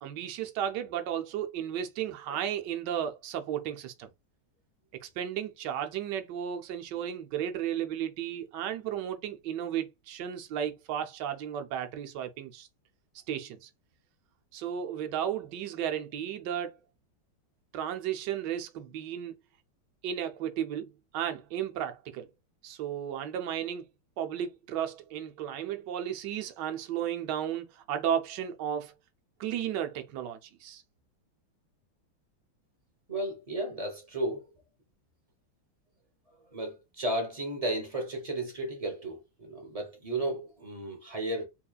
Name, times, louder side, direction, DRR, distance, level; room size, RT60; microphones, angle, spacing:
voice 1, 0.0-4.1 5.0-12.7 13.3-13.7 14.5-16.8 17.7-19.3 20.0-22.3 22.6-23.8 24.2-28.9 29.4-30.8, right 9 dB, 70° right, 1.2 m, -34 dB
voice 2, 33.1-34.5 36.5-41.4, right 1 dB, 35° right, 0.5 m, -34 dB
4.4 x 3.0 x 2.4 m
omnidirectional pair, 2.3 m